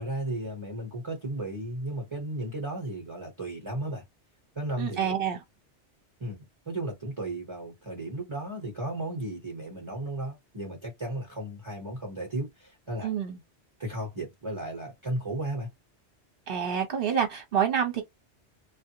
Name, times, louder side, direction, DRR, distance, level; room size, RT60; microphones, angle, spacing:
voice 1, 0.0-4.0 4.5-5.2 6.2-13.1 13.8-15.7, right 1 dB, 25° right, 0.9 m, -34 dB
voice 2, 4.8-5.4 13.0-13.4 16.5-18.0, right 8 dB, 55° right, 1.2 m, -27 dB
2.4 x 2.0 x 2.8 m
omnidirectional pair, 1.2 m